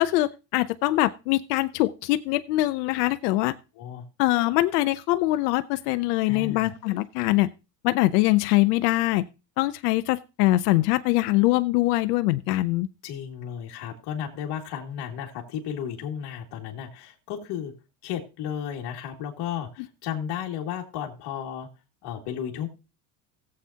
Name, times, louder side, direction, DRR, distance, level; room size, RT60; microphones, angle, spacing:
voice 1, 0.0-3.5 4.2-7.5 7.8-9.3 9.6-12.9, left 18 dB, 75° left, 11 dB, 0.7 m, -23 dB
voice 2, 6.3-6.7 13.0-17.7 18.0-21.7 22.0-22.7, left 9 dB, 55° left, 0 dB, 2.3 m, -34 dB
17.5 x 7.8 x 2.8 m, 0.28 s
supercardioid pair, 105°, 48 cm